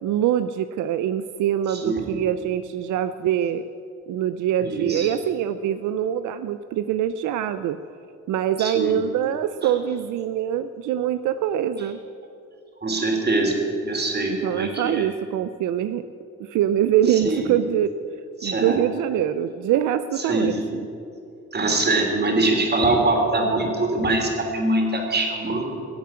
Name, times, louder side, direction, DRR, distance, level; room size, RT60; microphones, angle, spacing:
voice 1, 0.0-3.6 4.1-7.8 8.3-12.0 14.3-16.0 16.4-17.9 18.4-20.9, right 10 dB, 80° right, 12 dB, 0.5 m, -24 dB
voice 2, 1.7-2.1 4.6-5.1 8.6-9.0 9.6-9.7 12.8-15.0 17.1-17.5 18.4-18.8 20.3-20.6 21.5-25.8, right 2 dB, 35° right, 2 dB, 3.3 m, -23 dB
17.0 x 7.5 x 8.6 m, 2.6 s
cardioid pair, 90°, 30 cm